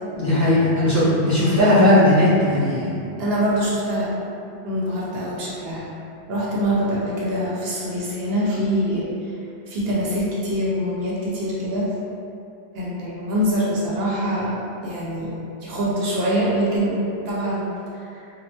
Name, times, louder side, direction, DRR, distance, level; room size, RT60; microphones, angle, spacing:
voice 1, 0.1-3.0, left 1 dB, 20° left, -13 dB, 0.8 m, -17 dB
voice 2, 3.2-4.1 4.6-5.9 6.3-9.1 9.7-11.9 12.7-15.3 15.6-18.2, equal, 70° right, -6 dB, 0.8 m, -24 dB
3.1 x 2.2 x 2.7 m, 2.7 s
omnidirectional pair, 1.1 m